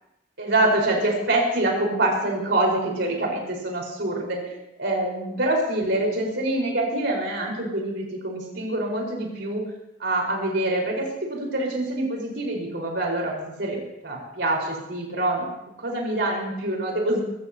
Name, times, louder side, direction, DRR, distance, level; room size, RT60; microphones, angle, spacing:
voice 1, 0.4-4.4 4.8-9.6 10.0-11.1 11.4-15.5 15.8-17.2, right 1 dB, 65° right, 0 dB, 5.0 m, -25 dB
23.5 x 14.5 x 3.0 m, 0.87 s
head